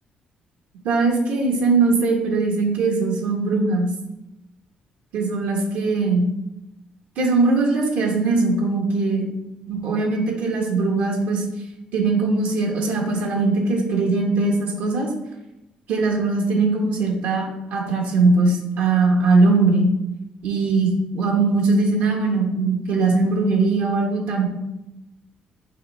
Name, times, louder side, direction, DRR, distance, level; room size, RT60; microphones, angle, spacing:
voice 1, 0.8-3.9 5.1-6.3 7.2-9.2 9.7-11.4 11.9-15.1 15.9-17.4 17.7-19.9 20.4-24.4, right 3 dB, 85° right, 0 dB, 1.6 m, -20 dB
6.5 x 3.2 x 5.5 m, 0.94 s
cardioid pair, 115°, 3 cm